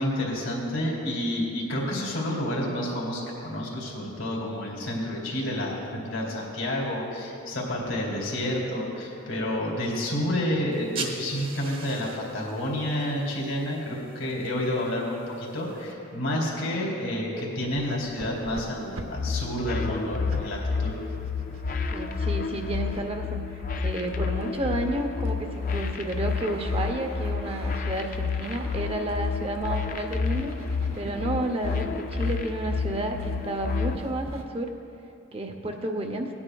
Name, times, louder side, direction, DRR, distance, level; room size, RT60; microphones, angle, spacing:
voice 1, 0.0-20.9, left 1 dB, 70° left, -3 dB, 2.3 m, -29 dB
sound 1, 10.7-15.9, right 4 dB, 40° right, 1.1 m, -42 dB
sound 2, 17.7-20.5 20.8-23.0 23.7-31.2 31.4-31.8 32.1-32.4 32.7-34.4, right 2 dB, 75° right, 0.8 m, -45 dB
sound 3, 19.2-34.0, left 5 dB, 40° left, 0.4 m, -30 dB
voice 2, 21.9-30.5 30.9-34.7 35.3-36.3, right 1 dB, 25° right, 4 dB, 0.6 m, -31 dB
18.0 x 9.8 x 2.3 m, 2.7 s
head